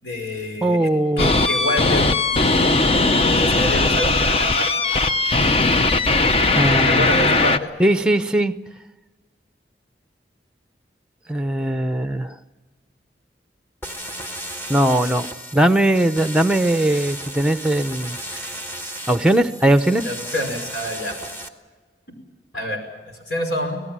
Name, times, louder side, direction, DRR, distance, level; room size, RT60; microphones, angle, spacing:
voice 1, 0.0-0.9 1.2-2.9 3.3-5.0 6.5-7.7 19.9-21.2 22.5-22.8 23.1-23.8, left 1 dB, 75° left, 3 dB, 5.3 m, -27 dB
voice 2, 0.6-1.4 4.9-5.2 6.6-7.1 7.8-8.5 11.3-12.3 14.7-15.3 15.5-18.2 19.1-20.1, right 1 dB, 5° right, 10 dB, 0.7 m, -19 dB
sound 1, 1.2-7.6, left 3 dB, 35° left, 0.8 m, -18 dB
sound 2, 13.8-21.5, right 1 dB, 10° left, 1.3 m, -34 dB
26.5 x 18.0 x 7.5 m, 1.4 s
head